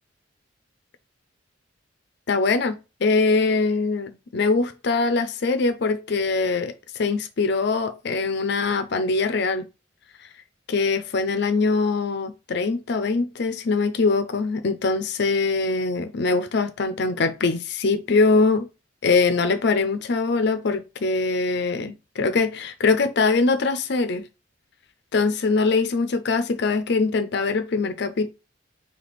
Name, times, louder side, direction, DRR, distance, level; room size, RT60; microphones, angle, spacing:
voice 1, 2.3-9.6 10.7-18.7 19.0-21.9 22.2-24.2 25.1-28.3, left 4 dB, 60° left, 0.5 m, -22 dB
3.3 x 2.8 x 4.1 m
head